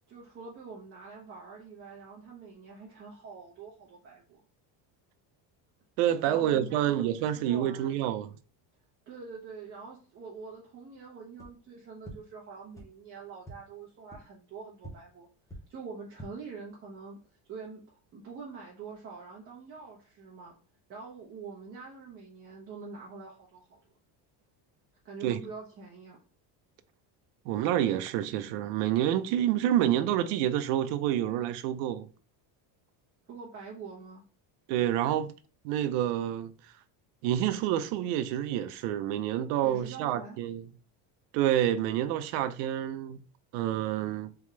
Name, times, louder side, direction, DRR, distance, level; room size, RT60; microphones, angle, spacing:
voice 1, 0.1-4.4 6.3-8.0 9.1-15.3 15.7-17.2 17.5-20.5 20.9-23.8 25.0-26.2 33.3-34.2 39.6-40.4, right 5 dB, 25° right, 1.1 m, -45 dB
voice 2, 6.0-8.3 25.2-25.4 27.5-32.1 34.7-35.3 35.6-36.5 37.2-40.6 41.3-43.2 43.5-44.3, right 11 dB, 90° right, 0.7 m, -28 dB
sound 1, 11.3-11.5 12.0-12.1 12.7-12.8 13.4-13.5 14.1-14.2 14.8-14.9 15.4-15.6 16.0-16.3, right 1 dB, 5° left, 0.7 m, -44 dB
3.8 x 3.5 x 3.2 m
cardioid pair, 170°, 47 cm